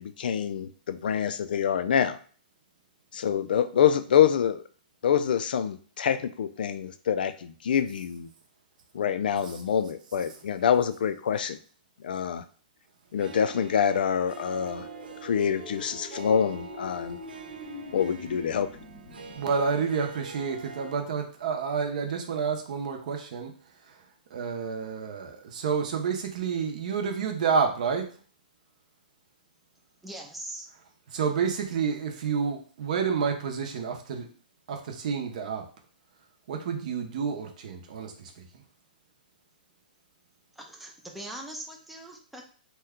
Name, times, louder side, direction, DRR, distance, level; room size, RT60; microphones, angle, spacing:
voice 1, 0.0-2.2 3.1-4.6 5.0-8.3 8.9-11.6 12.0-12.4 13.1-14.9 15.2-17.2 17.9-18.7, left 8 dB, 70° left, 11 dB, 0.3 m, -26 dB
Harp, 13.2-21.0, right 6 dB, 85° right, 0.4 m, -44 dB
sound 1, 14.6-19.6, left 5 dB, 25° left, 0.7 m, -44 dB
voice 2, 19.3-23.5 24.3-28.0 31.1-34.3 34.7-35.6 36.5-38.4, right 6 dB, 50° right, 4 dB, 0.7 m, -29 dB
voice 3, 30.0-30.7 40.6-42.4, right 1 dB, ahead, 0 dB, 0.4 m, -41 dB
2.9 x 2.2 x 3.5 m, 0.43 s
hypercardioid pair, 160°, 5 cm